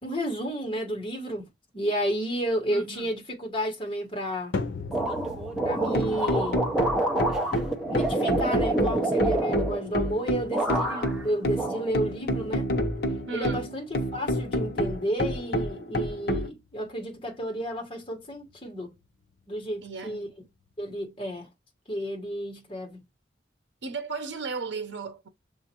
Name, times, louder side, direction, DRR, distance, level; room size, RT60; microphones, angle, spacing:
voice 1, 0.0-1.5 1.7-4.6 5.6-6.7 7.9-12.7 13.3-13.8 14.1-18.9 19.5-20.3 20.8-21.5 21.9-23.0, equal, 30° left, 1.3 m, -31 dB
voice 2, 2.7-3.1 13.3-13.7 19.8-20.3 23.8-25.3, right 4 dB, 80° right, 0.7 m, -35 dB
sound 1, 4.5-21.0, left 3 dB, 90° left, 0.6 m, -43 dB
sound 2, 4.9-10.2 10.5-11.2 11.6-12.4, right 2 dB, 5° right, 0.6 m, -28 dB
sound 3, 5.6-16.5, equal, 60° left, 0.9 m, -29 dB
7.1 x 2.5 x 2.9 m
head